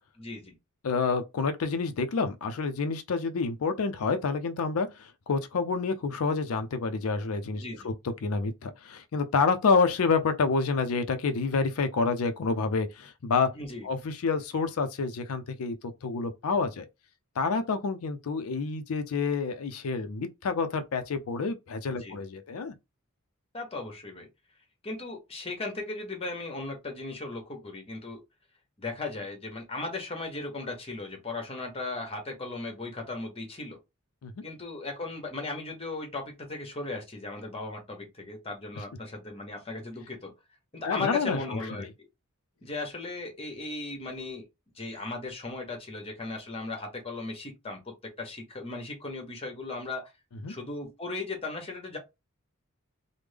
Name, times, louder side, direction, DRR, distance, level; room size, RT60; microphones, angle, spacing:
voice 1, 0.1-0.5 7.6-7.9 13.5-13.9 21.9-22.2 23.5-24.3 24.8-28.2 28.8-33.8 34.4-40.3 40.7-41.9 42.6-44.4 44.7-50.1 50.5-52.0, left 3 dB, 30° left, 1.1 m, -37 dB
voice 2, 0.8-7.9 8.2-13.5 13.8-15.7 16.0-16.9 17.4-22.7 34.2-34.3 40.8-41.9 50.4-50.5, left 4 dB, 75° left, 0.5 m, -28 dB
3.4 x 2.1 x 3.3 m
head